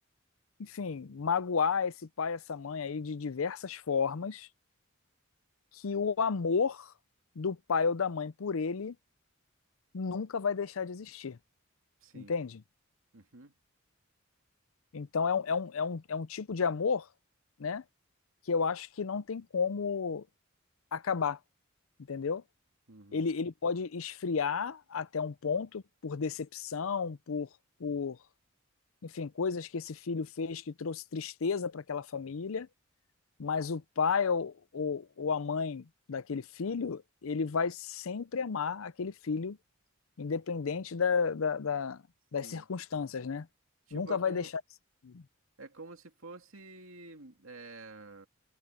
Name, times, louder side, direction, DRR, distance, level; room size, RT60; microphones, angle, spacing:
voice 1, 0.6-4.5 5.7-6.9 7.4-9.0 9.9-11.4 12.1-12.6 14.9-17.1 17.6-17.8 18.5-20.2 20.9-21.4 22.1-22.4 23.1-27.5 27.8-28.2 29.0-32.7 33.4-39.6 40.2-42.0 42.3-43.5 43.9-44.4 45.0-45.2, left 5 dB, 80° left, 0.6 m, -32 dB
voice 2, 12.0-12.3 13.1-13.5 22.9-23.3 42.4-42.7 43.9-44.5 45.6-48.3, right 3 dB, 75° right, 2.5 m, -49 dB
head